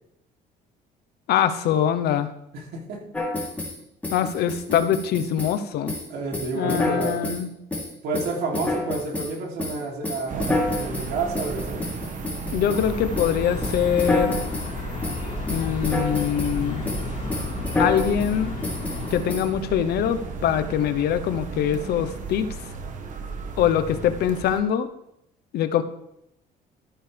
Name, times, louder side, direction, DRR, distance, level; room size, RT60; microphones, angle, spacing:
voice 1, 1.3-2.3 4.1-5.9 6.5-7.5 12.5-14.4 15.5-16.8 17.8-18.5 19.1-22.5 23.6-24.9 25.5-25.8, left 9 dB, 75° left, 11 dB, 0.9 m, -23 dB
voice 2, 2.5-3.1 6.1-7.2 8.0-11.8, right 3 dB, 75° right, 0 dB, 3.0 m, -30 dB
sound 1, 3.1-3.8 4.0-5.6 5.9-6.1 6.3-7.4 7.7-9.3 9.6-12.9 13.2-13.4 13.6-14.7 15.0-15.2 15.5-16.6 16.9-17.0 17.3-18.3 18.6-19.4, left 2 dB, 10° left, 3.3 m, -28 dB
sound 2, 10.3-24.6, right 4 dB, 50° right, 1.4 m, -34 dB
sound 3, 12.7-19.2, left 4 dB, 45° left, 2.7 m, -33 dB
13.5 x 9.0 x 3.4 m, 0.79 s
cardioid pair, 110°, 17 cm